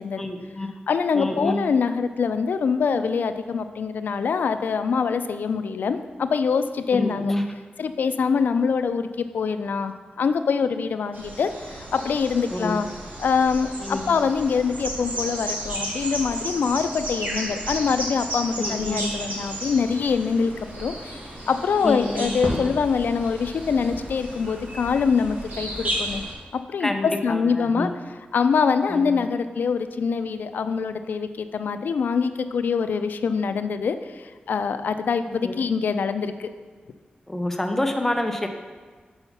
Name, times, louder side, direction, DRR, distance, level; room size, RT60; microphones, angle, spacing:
voice 1, 0.2-0.7 1.1-1.7 6.9-7.4 12.5-12.8 13.8-14.1 18.6-19.0 21.8-22.3 26.8-27.9 28.9-29.3 35.4-35.6 37.3-38.5, left 1 dB, 10° left, 4 dB, 0.5 m, -28 dB
voice 2, 0.9-7.3 7.8-12.9 13.2-21.2 21.5-26.2 26.5-27.9 28.3-35.2 35.5-36.5, left 5 dB, 80° left, 10 dB, 0.3 m, -24 dB
sound 1, 11.1-26.3, right 1 dB, 65° right, 1.4 m, -34 dB
Crackle, 18.4-26.2, equal, 45° right, 1.8 m, -39 dB
5.5 x 4.5 x 5.7 m, 1.4 s
wide cardioid pair, 160°, 3 cm